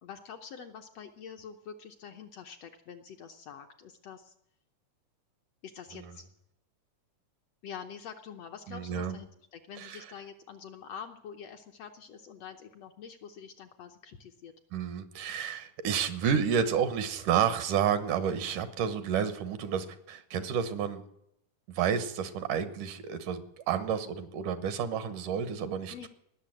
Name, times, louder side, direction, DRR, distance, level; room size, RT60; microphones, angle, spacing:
voice 1, 0.0-4.3 5.6-6.2 7.6-14.5 25.9-26.1, left 7 dB, 65° left, 4 dB, 1.7 m, -46 dB
voice 2, 8.7-9.1 9.8-10.0 14.7-21.0 21.7-26.1, right 8 dB, 80° right, 11 dB, 2.7 m, -30 dB
18.5 x 6.9 x 9.1 m, 0.76 s
omnidirectional pair, 3.6 m